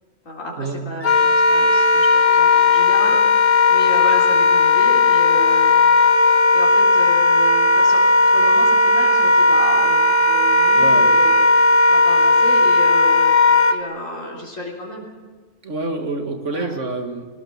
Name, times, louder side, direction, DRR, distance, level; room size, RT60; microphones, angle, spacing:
voice 1, 0.3-5.7 6.5-11.5 11.9-13.3 13.7-15.0 16.5-16.8, equal, 85° left, -3 dB, 3.9 m, -31 dB
Wind instrument woodwind instrument, 1.0-13.8, left 3 dB, 50° left, 1.5 m, -15 dB
voice 2, 10.8-11.1 15.6-17.3, right 2 dB, 70° right, 5 dB, 2.2 m, -27 dB
21.0 x 18.5 x 7.2 m, 1.5 s
omnidirectional pair, 1.3 m